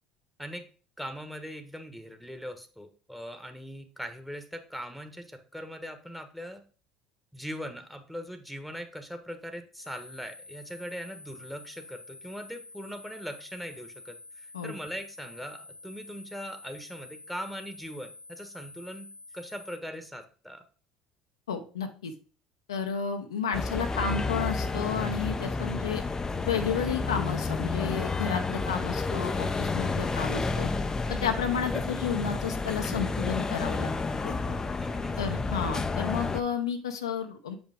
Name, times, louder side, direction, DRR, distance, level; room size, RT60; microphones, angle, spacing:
voice 1, 1.0-6.6 7.3-20.6 30.0-30.3 34.8-35.4, equal, ahead, 8 dB, 1.3 m, -40 dB
sound 1, 9.8-19.8, left 2 dB, 50° right, 1.8 m, -49 dB
voice 2, 21.5-22.1 22.7-26.0 26.5-30.7 31.1-33.9 34.2-34.4 35.2-37.5, left 7 dB, 85° left, 5 dB, 0.7 m, -32 dB
sound 2, 23.5-36.4, left 3 dB, 20° left, 0.6 m, -30 dB
7.3 x 5.2 x 3.5 m, 0.39 s
hypercardioid pair, 65°, 3 cm